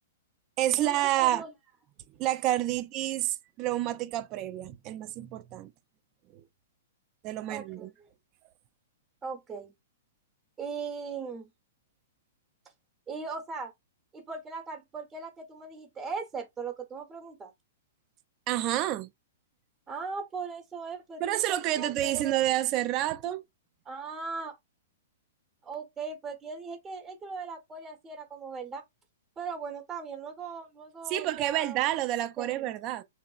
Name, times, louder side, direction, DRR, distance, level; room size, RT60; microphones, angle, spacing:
voice 1, 0.6-1.4 2.2-5.7 6.3-6.4 7.2-7.9 18.5-19.1 21.2-23.4 31.1-33.0, right 14 dB, 35° right, 0.4 m, -29 dB
voice 2, 1.2-1.5 7.5-7.9 9.2-9.7 10.6-11.5 13.1-13.7 14.1-17.5 19.9-22.3 23.9-24.5 25.6-28.8 29.4-31.8 32.4-32.8, right 5 dB, 20° right, 0.8 m, -39 dB
2.9 x 2.0 x 2.4 m
hypercardioid pair, 120°, 0 cm